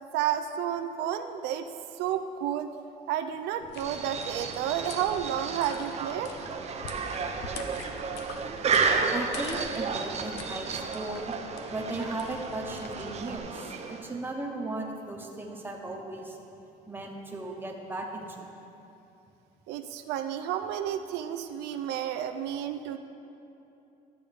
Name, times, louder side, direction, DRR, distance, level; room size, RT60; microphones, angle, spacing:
voice 1, 0.1-1.7 2.0-2.7 3.1-6.5 19.7-23.0, right 10 dB, 90° right, 8 dB, 0.4 m, -31 dB
sound 1, 3.6-13.4, left 4 dB, 80° left, 0.8 m, -45 dB
sound 2, 3.8-14.2, right 5 dB, 40° right, 0.6 m, -32 dB
voice 2, 9.1-11.3 11.7-16.4 16.9-18.5, right 2 dB, 10° right, 0 dB, 1.1 m, -36 dB
12.0 x 6.9 x 3.5 m, 2.8 s
cardioid pair, 110°, 17 cm